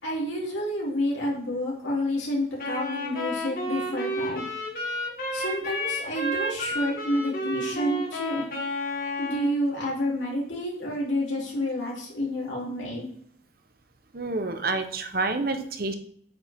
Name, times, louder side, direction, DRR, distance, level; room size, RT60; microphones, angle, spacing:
voice 1, 0.0-4.5 5.3-8.5 9.2-13.1, left 1 dB, 90° left, -4 dB, 3.4 m, -29 dB
Wind instrument woodwind instrument, 2.6-9.5, equal, 50° left, 1.9 m, -31 dB
voice 2, 14.1-15.9, right 3 dB, 55° right, 7 dB, 0.9 m, -28 dB
8.7 x 5.0 x 3.6 m, 0.62 s
head